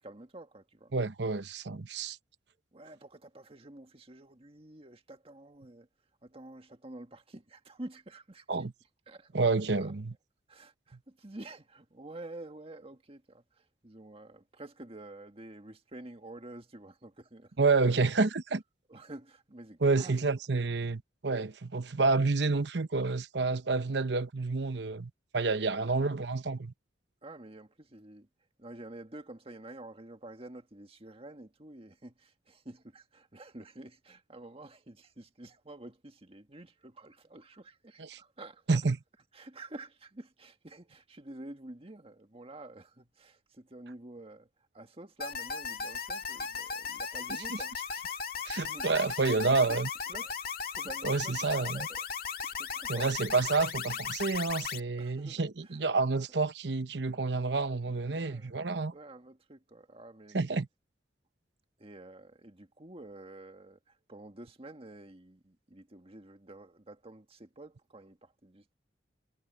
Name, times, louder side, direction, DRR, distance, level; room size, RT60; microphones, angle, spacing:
voice 1, 0.0-0.9 2.7-5.9 6.2-8.6 9.1-9.9 10.5-17.9 18.9-20.2 25.8-25.9 27.2-28.3 28.6-38.8 39.3-44.5 44.7-47.7 48.6-48.9 49.5-49.8 50.1-50.3 50.7-52.0 52.4-53.1 55.0-55.8 56.1-56.2 58.1-58.6 58.9-60.4 61.8-68.8, right 2 dB, 30° right, 1.8 m, -49 dB
voice 2, 0.9-2.2 8.5-8.7 9.3-10.1 17.6-18.6 19.8-26.7 38.0-38.2 38.7-39.0 47.3-47.6 48.4-49.9 51.0-51.9 52.9-58.9 60.3-60.7, right 3 dB, 65° right, 0.9 m, -29 dB
sound 1, 45.2-54.8, left 6 dB, 55° left, 2.1 m, -37 dB
head